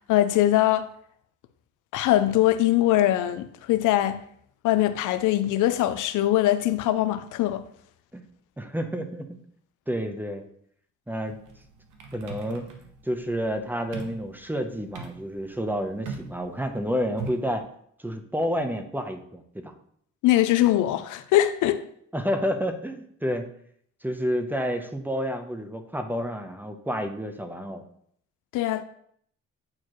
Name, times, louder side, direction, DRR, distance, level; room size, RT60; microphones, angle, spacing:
voice 1, 0.1-0.9 1.9-4.2 4.6-7.6 20.2-21.8 28.5-28.8, left 14 dB, 85° left, 0.5 m, -22 dB
voice 2, 8.6-9.4 9.9-10.4 11.1-11.4 12.1-12.7 13.0-17.7 18.0-19.7 22.1-23.5 24.0-27.8, equal, 5° right, 0.8 m, -29 dB
Typing heavy keyboard, 11.3-17.6, right 4 dB, 85° right, 1.1 m, -41 dB
8.7 x 4.4 x 3.1 m
cardioid pair, 90°, 30 cm